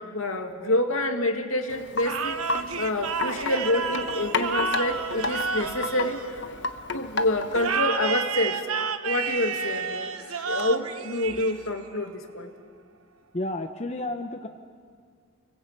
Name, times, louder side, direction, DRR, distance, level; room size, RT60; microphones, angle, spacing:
voice 1, 0.0-2.4 2.8-6.2 6.9-8.6 9.0-12.5, left 1 dB, 75° left, 4 dB, 2.3 m, -27 dB
Wind chime, 1.7-7.9, left 3 dB, 55° left, 1.1 m, -33 dB
sound 1, 2.0-6.8 7.6-12.0, right 5 dB, 90° right, 1.2 m, -30 dB
voice 2, 13.3-14.5, left 1 dB, 30° left, 5 dB, 0.9 m, -31 dB
30.0 x 21.5 x 8.3 m, 2.1 s
head